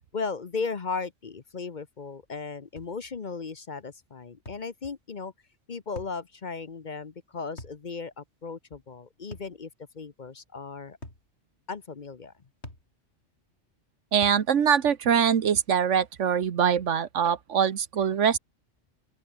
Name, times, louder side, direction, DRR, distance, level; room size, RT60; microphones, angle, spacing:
voice 1, 0.1-5.3 5.7-9.7 9.9-11.0 11.7-12.3, left 4 dB, 40° left, 1.0 m, -36 dB
sound 1, 2.8-3.0 4.5-4.7 6.0-6.2 7.6-7.8 9.3-9.6 11.0-11.3 12.6-12.9 14.2-14.5, left 1 dB, 65° left, 6.5 m, -43 dB
voice 2, 14.1-18.4, right 8 dB, 75° right, 1.4 m, -23 dB
open air
omnidirectional pair, 1.2 m